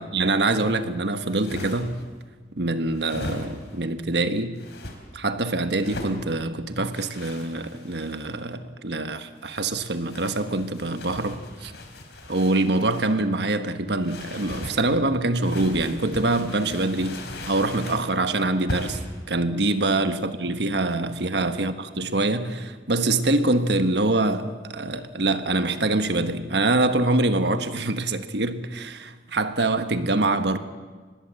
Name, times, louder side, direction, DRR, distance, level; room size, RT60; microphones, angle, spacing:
voice 1, 0.0-2.0 2.5-4.6 5.1-11.7 12.3-19.0 19.3-30.6, right 2 dB, 70° right, 1.4 m, -24 dB
sound 1, 1.2-2.1 2.9-3.8 4.5-5.0 5.7-6.2 6.9-8.4 9.4-13.1 14.0-14.8 15.4-18.1 18.7-19.1, left 1 dB, 70° left, 4.0 m, -38 dB
25.0 x 20.5 x 7.7 m
head